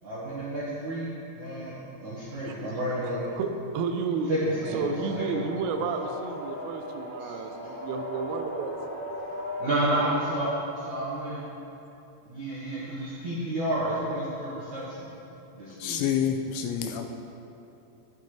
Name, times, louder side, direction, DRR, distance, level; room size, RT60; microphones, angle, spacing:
voice 1, 0.0-1.1 1.3-3.2 4.3-4.9 5.2-5.4 7.2-7.3 9.6-11.4 12.3-15.0 15.5-16.0, right 1 dB, 70° right, -9 dB, 1.8 m, -30 dB
voice 2, 3.3-4.3 4.7-8.8, right 5 dB, 90° right, 5 dB, 3.3 m, -31 dB
sound 1, 4.2-10.3, left 1 dB, 45° left, 2.2 m, -38 dB
voice 3, 15.8-17.1, left 8 dB, 90° left, 4 dB, 2.5 m, -28 dB
11.5 x 10.5 x 3.3 m, 2.8 s
omnidirectional pair, 5.7 m